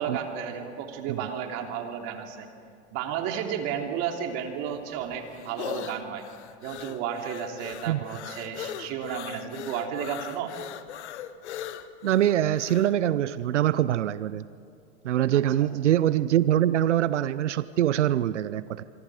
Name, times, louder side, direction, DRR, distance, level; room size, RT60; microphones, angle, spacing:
voice 1, 0.0-2.5 2.9-6.2 6.6-10.5 15.3-15.7, right 8 dB, 45° right, 3 dB, 3.2 m, -33 dB
sound 1, 4.7-12.9, left 10 dB, 75° left, 1.5 m, -39 dB
voice 2, 12.0-14.5 15.0-18.8, right 12 dB, 90° right, 16 dB, 0.7 m, -24 dB
26.0 x 24.0 x 5.0 m, 2.4 s
hypercardioid pair, 120°, 35 cm